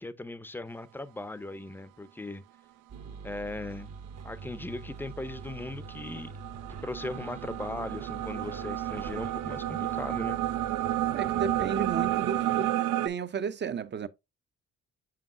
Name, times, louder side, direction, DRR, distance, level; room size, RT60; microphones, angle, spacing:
voice 1, 0.0-2.4 3.2-3.9 4.2-6.3 6.7-10.4, left 2 dB, 5° left, 0.6 m, -38 dB
sound 1, 2.9-12.7, right 5 dB, 60° right, 1.1 m, -44 dB
sound 2, 4.4-13.1, right 13 dB, 85° right, 0.5 m, -31 dB
voice 2, 11.1-12.7 13.0-14.1, right 6 dB, 35° right, 0.6 m, -33 dB
7.6 x 5.3 x 2.5 m
cardioid pair, 90°, 30 cm